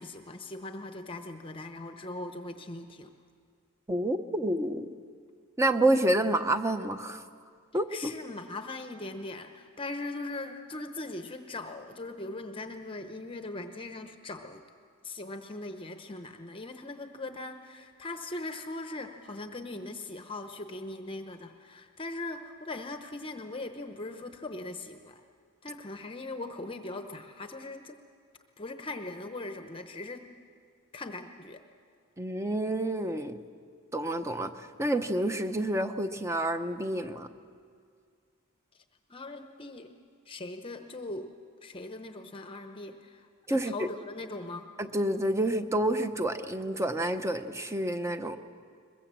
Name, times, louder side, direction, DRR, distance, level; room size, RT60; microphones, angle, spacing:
voice 1, 0.0-3.1 7.9-14.6 15.0-25.2 25.6-28.0 28.6-30.3 30.9-31.6 39.1-39.9 40.3-41.3 41.6-44.7, left 2 dB, 25° left, 6 dB, 0.8 m, -40 dB
voice 2, 3.9-4.9 5.6-7.2 7.7-8.1 32.2-33.4 33.9-37.3 43.5-43.9 44.8-48.4, right 1 dB, 15° right, 9 dB, 0.8 m, -28 dB
22.0 x 22.0 x 7.4 m, 2.2 s
head